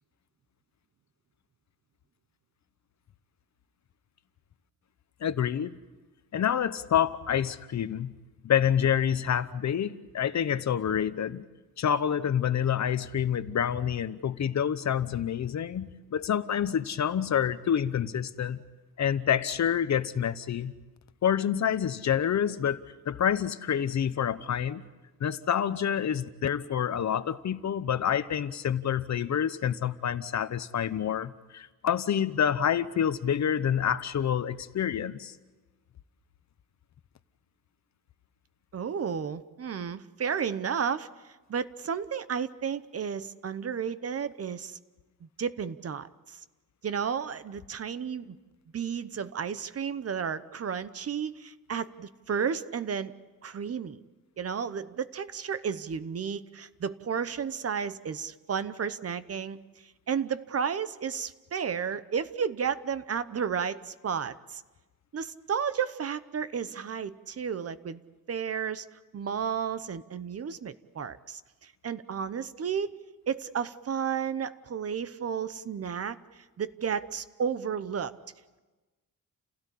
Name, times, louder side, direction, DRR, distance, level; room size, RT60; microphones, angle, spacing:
voice 1, 5.2-5.8 6.3-8.1 8.4-11.4 11.8-18.6 19.0-20.7 21.2-22.8 23.1-24.8 25.2-35.3, left 9 dB, 50° left, 14 dB, 0.9 m, -27 dB
voice 2, 38.7-41.1 41.5-44.8 45.2-46.4 46.8-48.4 48.7-53.1 53.4-54.0 54.4-64.6 65.1-68.0 68.3-68.9 69.1-72.9 73.3-78.1, right 7 dB, 45° right, 14 dB, 0.9 m, -32 dB
29.5 x 16.5 x 8.4 m, 1.2 s
wide cardioid pair, 150°, 35 cm